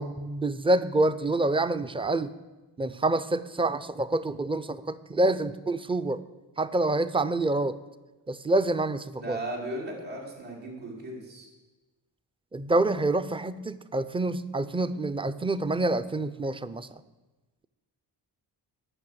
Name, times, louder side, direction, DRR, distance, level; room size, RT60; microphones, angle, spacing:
voice 1, 0.0-2.3 2.8-6.2 6.6-7.8 8.3-9.4 12.5-16.9, right 2 dB, 15° right, 13 dB, 0.4 m, -27 dB
voice 2, 9.2-11.5, right 1 dB, 80° right, -3 dB, 2.9 m, -36 dB
8.8 x 5.9 x 7.9 m, 1.1 s
cardioid pair, 60°, 43 cm